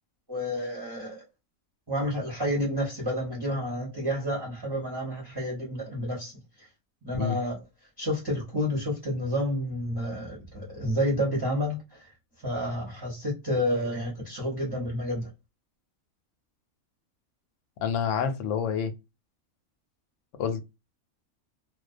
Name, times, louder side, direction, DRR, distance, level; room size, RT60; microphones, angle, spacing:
voice 1, 0.3-1.2 1.9-6.3 6.6-6.7 7.0-7.6 8.0-11.8 12.4-15.3, equal, 20° right, 0.6 m, -30 dB
voice 2, 17.8-18.9 20.4-20.8, left 7 dB, 70° left, 0.8 m, -28 dB
2.3 x 2.2 x 2.5 m
omnidirectional pair, 1.5 m